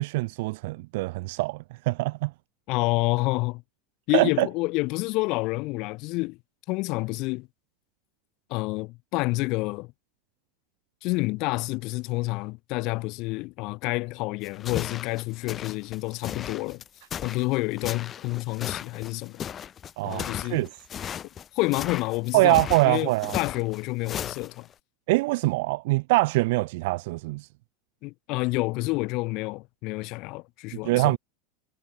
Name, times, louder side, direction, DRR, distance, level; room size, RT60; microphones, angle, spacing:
voice 1, 0.0-1.6 1.9-2.3 4.1-4.5 20.0-20.7 22.3-23.4 25.1-27.5 30.8-31.2, right 22 dB, 65° right, 0.6 m, -24 dB
voice 2, 2.7-3.6 4.1-6.4 6.7-7.5 8.5-9.9 11.0-16.8 17.2-19.4 20.0-20.7 21.6-24.7 28.0-31.2, left 24 dB, 55° left, 2.3 m, -28 dB
sound 1, 14.4-24.7, left 9 dB, 35° left, 1.0 m, -36 dB
hypercardioid pair, 90°, 0 cm